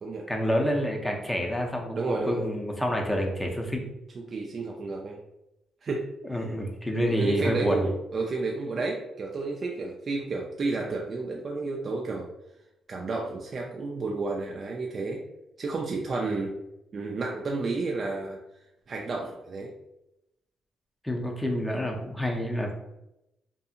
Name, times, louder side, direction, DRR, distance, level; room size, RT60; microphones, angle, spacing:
voice 1, 0.3-3.9 6.3-7.9 21.0-22.7, equal, 5° left, 1 dB, 0.6 m, -28 dB
voice 2, 1.9-2.5 4.2-5.2 5.8-6.1 6.3-6.5 6.9-12.3 12.9-15.2 15.6-16.6 16.9-18.4 18.9-19.7, right 3 dB, 45° right, -1 dB, 0.4 m, -31 dB
2.6 x 2.6 x 2.4 m, 0.87 s
cardioid pair, 90°, 0 cm